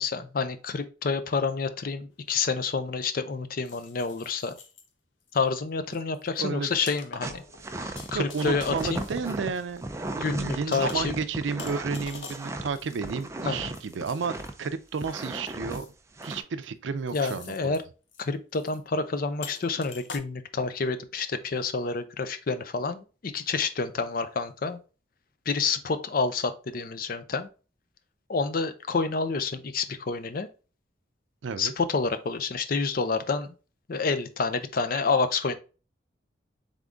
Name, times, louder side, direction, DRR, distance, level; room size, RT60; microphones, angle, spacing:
voice 1, 0.0-4.6 5.3-7.4 7.8-9.1 10.2-11.1 13.5-13.7 17.1-17.8 18.2-24.8 25.5-27.5 28.3-30.5 31.6-33.5 33.9-35.5, left 4 dB, 50° left, 0.5 m, -28 dB
sound 1, 2.1-2.2 3.6-4.9 5.3-5.5 5.9-10.0 10.7-11.2 11.6-14.5 14.9-15.9 16.2-16.6 17.1-17.8 18.1-18.2 18.5-18.8 19.4-20.2, left 5 dB, 90° left, 0.7 m, -46 dB
voice 2, 6.4-6.7 8.1-9.9 10.2-15.9 16.2-17.8 31.4-31.7, right 5 dB, 85° right, 0.5 m, -32 dB
sound 2, 7.2-14.7 15.0-15.8 16.2-16.4, right 2 dB, 15° right, 0.4 m, -36 dB
3.6 x 3.6 x 3.7 m
head